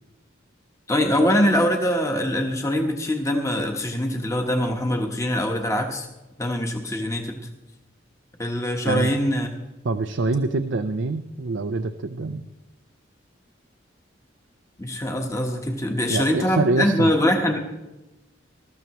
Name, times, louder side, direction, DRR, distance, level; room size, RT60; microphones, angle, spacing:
voice 1, 0.9-6.1 6.4-7.4 8.4-9.5 14.8-17.6, left 1 dB, 15° left, 3 dB, 1.2 m, -23 dB
voice 2, 9.8-12.5 16.1-17.1, right 3 dB, 65° right, 7 dB, 0.5 m, -25 dB
20.5 x 13.5 x 3.1 m, 1.0 s
head